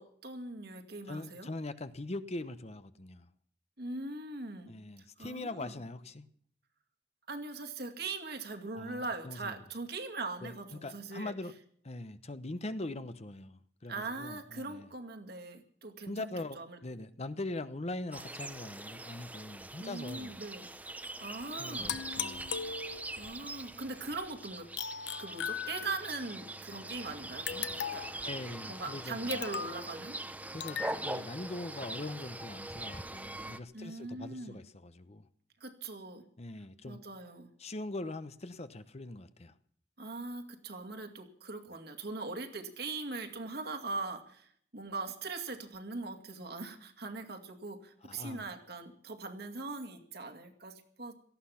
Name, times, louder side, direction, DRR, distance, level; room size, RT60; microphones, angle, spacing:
voice 1, 0.0-1.5 3.8-4.7 5.2-5.7 7.3-11.3 13.9-16.3 16.6-16.8 19.8-20.7 21.2-22.0 22.3-22.4 23.2-24.7 25.2-28.1 28.7-30.2 33.7-34.6 35.6-36.2 36.8-37.5 40.0-51.1, right 3 dB, 60° right, 2.2 m, -41 dB
voice 2, 1.1-3.3 4.7-6.2 8.7-9.6 10.4-11.5 11.8-14.9 16.1-20.3 21.6-22.5 28.2-29.4 30.5-35.3 36.4-37.0 37.6-39.5 48.0-48.5, left 2 dB, 35° left, 0.8 m, -42 dB
sound 1, 18.1-33.6, right 2 dB, 10° right, 0.8 m, -42 dB
sound 2, 21.9-23.3 24.8-26.2 27.5-28.2 29.3-29.8 30.6-31.0, left 8 dB, 90° left, 0.8 m, -38 dB
18.0 x 14.0 x 5.7 m
head